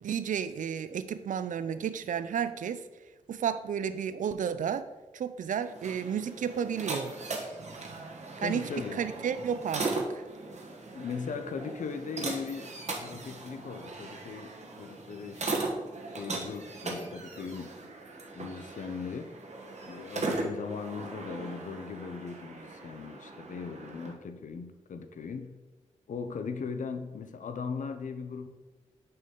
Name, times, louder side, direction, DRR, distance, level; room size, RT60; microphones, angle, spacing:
voice 1, 0.0-2.8 3.3-4.8 5.1-7.1 8.4-10.2, right 8 dB, 75° right, 12 dB, 0.4 m, -32 dB
sound 1, 5.6-24.1, right 3 dB, 55° right, 1.1 m, -38 dB
voice 2, 8.4-9.0 10.9-14.5 14.8-17.9 18.3-19.3 19.8-25.5 26.1-28.5, left 5 dB, 70° left, 8 dB, 0.6 m, -39 dB
6.3 x 4.3 x 3.7 m, 1.2 s
cardioid pair, 40°, 14 cm